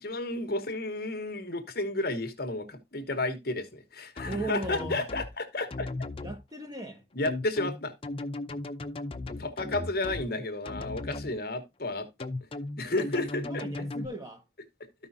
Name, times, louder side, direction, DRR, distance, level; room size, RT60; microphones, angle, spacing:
voice 1, 0.0-5.9 7.1-7.9 9.3-12.1 12.8-13.6, left 2 dB, 55° left, 1.2 m, -32 dB
sound 1, 4.2-5.3 5.7-6.4 7.3-10.3 10.7-11.3 12.2-14.1, left 2 dB, 30° left, 0.5 m, -36 dB
voice 2, 4.2-5.1 6.2-7.0 13.4-14.4, right 2 dB, 20° right, 1.2 m, -37 dB
13.0 x 5.4 x 2.7 m
head